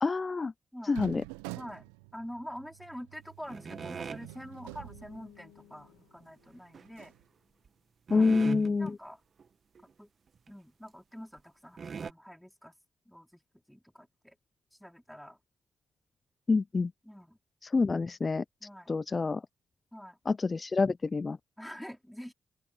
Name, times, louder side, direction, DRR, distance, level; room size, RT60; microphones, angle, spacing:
voice 1, 0.0-0.5 0.9-1.2 8.1-9.0 16.5-16.9 17.6-18.4 18.9-19.4 20.3-21.4, left 4 dB, 35° left, 0.3 m, -27 dB
sound 1, 0.9-5.8 6.2-6.3 6.9-7.2, right 22 dB, 85° right, 0.8 m, -47 dB
voice 2, 1.5-7.1 8.1-8.3 8.8-9.2 10.0-10.1 10.5-12.8 13.1-13.4 13.7-14.4 14.8-15.4 17.0-17.4 18.6-18.9 19.9-20.2 21.6-22.3, equal, 5° left, 4.4 m, -46 dB
sound 2, 3.4-7.5, left 17 dB, 85° left, 2.1 m, -59 dB
sound 3, 3.5-4.3 6.7-7.1 7.7-7.8 8.1-8.9 9.4-9.5 9.8-9.9 10.5-10.6 11.4-11.5 11.8-12.1, right 6 dB, 50° right, 1.6 m, -40 dB
open air
hypercardioid pair, 45°, 0 cm